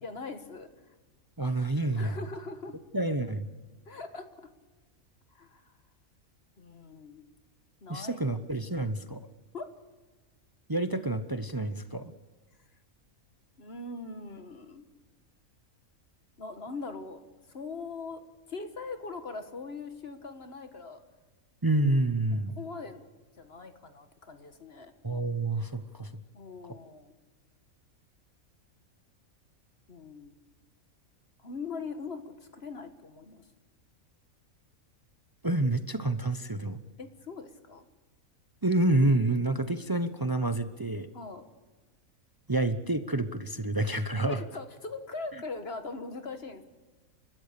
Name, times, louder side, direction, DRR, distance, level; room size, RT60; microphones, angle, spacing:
voice 1, 0.0-0.7 1.9-2.8 3.9-4.5 5.3-5.7 6.6-7.2 7.8-8.2 8.5-8.6 9.5-9.7 13.6-14.8 16.4-17.2 17.5-18.2 18.5-21.0 22.3-23.0 23.4-24.9 26.3-27.1 29.9-30.4 31.4-33.5 37.0-37.8 41.1-41.5 44.3-46.6, left 4 dB, 45° left, 8 dB, 1.7 m, -41 dB
voice 2, 1.4-2.2 2.9-3.5 7.9-9.3 10.7-12.1 21.6-22.5 25.0-26.1 35.4-36.8 38.6-41.1 42.5-44.4, right 2 dB, 20° right, 10 dB, 0.6 m, -28 dB
30.0 x 13.5 x 6.7 m, 1.3 s
omnidirectional pair, 1.5 m